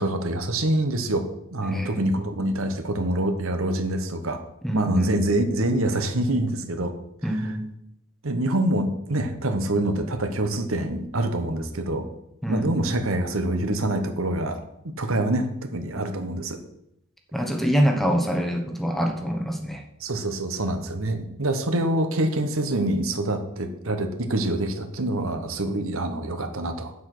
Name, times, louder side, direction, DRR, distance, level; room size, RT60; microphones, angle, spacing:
voice 1, 0.0-4.4 4.7-6.9 7.4-7.5 8.2-12.1 12.5-14.6 15.0-16.6 20.0-26.9, right 1 dB, 70° right, 7 dB, 1.1 m, -25 dB
voice 2, 1.7-2.0 4.6-5.1 7.2-7.7 12.4-12.9 17.3-19.8, equal, ahead, 3 dB, 1.1 m, -25 dB
8.2 x 7.5 x 6.0 m, 0.80 s
head